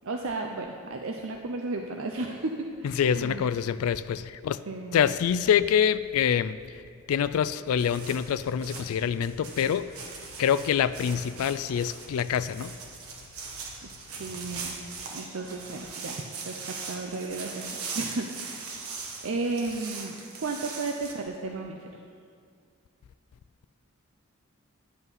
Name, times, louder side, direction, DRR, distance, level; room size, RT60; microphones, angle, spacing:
voice 1, 0.0-3.5 4.7-5.1 13.8-14.8 15.1-18.9 19.2-21.9, right 3 dB, 65° right, 0.7 m, -34 dB
voice 2, 3.0-4.6 4.9-6.8 7.1-9.9 10.4-12.8, left 8 dB, 80° left, 0.3 m, -26 dB
sound 1, 7.8-21.1, right 4 dB, 85° right, 1.4 m, -40 dB
11.0 x 8.1 x 5.5 m
head